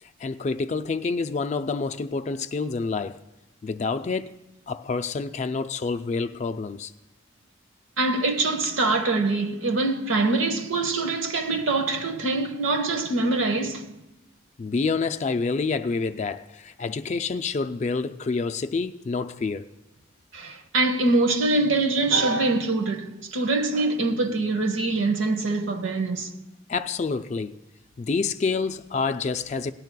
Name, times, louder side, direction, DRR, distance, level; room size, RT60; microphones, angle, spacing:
voice 1, 0.0-3.2 3.6-4.4 4.7-6.9 14.6-19.7 26.7-27.6 28.0-29.7, left 4 dB, 35° left, 0.3 m, -28 dB
voice 2, 8.0-13.9 20.3-26.3, right 3 dB, 70° right, 1.0 m, -24 dB
18.0 x 10.5 x 2.2 m
head